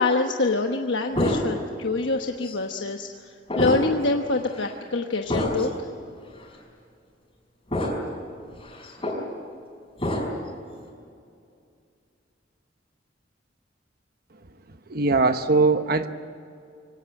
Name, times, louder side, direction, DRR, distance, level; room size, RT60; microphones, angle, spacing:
voice 1, 0.0-3.3 3.6-5.7, left 3 dB, 75° left, 4 dB, 1.1 m, -25 dB
sound 1, 1.1-1.8 2.4-2.6 3.5-4.1 4.5-4.7 5.3-5.7 6.4-6.5 7.7-8.2 8.5-9.2 10.0-10.5, left 1 dB, 30° left, 5.2 m, -27 dB
voice 2, 14.9-16.1, right 3 dB, 55° right, 9 dB, 1.0 m, -20 dB
24.0 x 18.0 x 9.1 m, 2.4 s
head